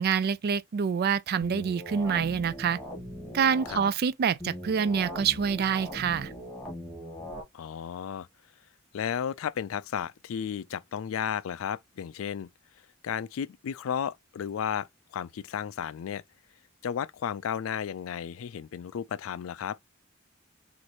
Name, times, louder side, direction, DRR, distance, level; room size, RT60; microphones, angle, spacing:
voice 1, 0.0-2.8 3.3-6.3, right 7 dB, 50° right, 0.4 m, -26 dB
sound 1, 1.4-3.8 4.4-7.4, equal, ahead, 1.6 m, -40 dB
voice 2, 7.5-8.3 8.9-12.5 13.0-14.9 15.1-16.2 16.8-19.8, left 8 dB, 85° left, 0.4 m, -33 dB
6.2 x 2.6 x 2.9 m
head